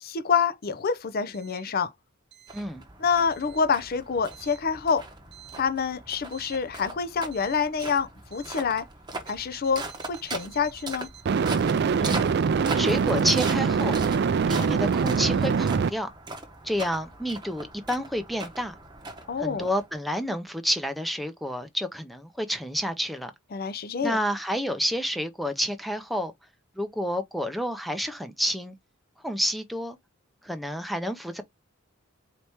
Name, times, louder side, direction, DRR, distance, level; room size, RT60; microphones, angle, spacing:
voice 1, 0.0-1.9 3.0-5.0 5.6-8.9 9.3-11.1 19.3-19.7 23.5-24.2, left 6 dB, 45° left, 0.5 m, -27 dB
sound 1, 2.5-20.2, right 3 dB, 20° right, 0.9 m, -40 dB
sound 2, 6.4-6.5 11.3-15.9, right 5 dB, 50° right, 0.4 m, -23 dB
voice 2, 12.0-12.3 12.7-14.0 14.5-16.1 16.6-18.7 19.4-23.3 24.0-26.3 26.8-28.8 29.2-30.0 30.4-31.4, equal, ahead, 0.6 m, -29 dB
4.2 x 2.9 x 3.4 m
head